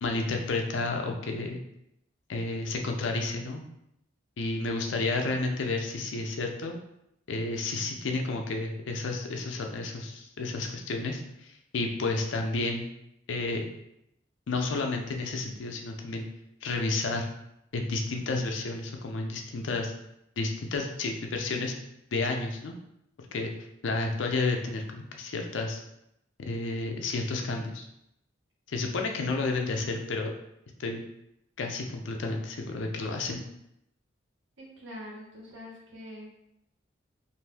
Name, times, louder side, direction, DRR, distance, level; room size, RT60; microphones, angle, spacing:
voice 1, 0.0-1.6 2.3-3.6 4.4-6.8 7.3-12.9 13.3-13.7 14.5-16.3 16.6-17.3 17.7-19.9 20.4-21.8 22.1-22.8 23.2-23.5 23.8-25.8 26.4-27.9 28.7-30.3 30.8-31.0 31.6-33.4, left 3 dB, 70° left, 3 dB, 0.5 m, -31 dB
voice 2, 34.6-36.3, left 1 dB, 75° right, -3 dB, 0.9 m, -44 dB
2.6 x 2.5 x 3.4 m, 0.80 s
head